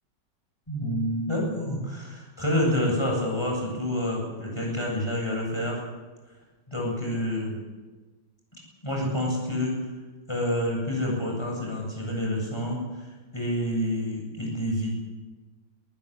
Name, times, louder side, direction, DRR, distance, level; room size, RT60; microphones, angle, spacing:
voice 1, 0.7-5.8 6.7-7.6 8.8-9.8 10.3-15.0, left 1 dB, 10° left, -2 dB, 8.1 m, -28 dB
25.0 x 15.0 x 8.5 m, 1.3 s
omnidirectional pair, 2.2 m